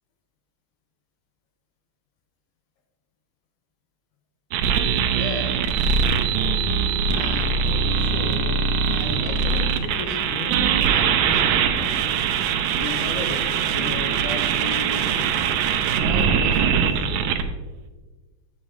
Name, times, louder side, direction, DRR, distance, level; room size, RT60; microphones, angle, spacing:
sound 1, 4.5-17.4, right 7 dB, 80° right, 2.5 m, -22 dB
voice 1, 5.1-5.6 7.1-12.0 12.7-15.5 16.0-17.2, left 4 dB, 80° left, 4 dB, 2.4 m, -35 dB
9.7 x 8.7 x 2.9 m, 1.3 s
omnidirectional pair, 5.0 m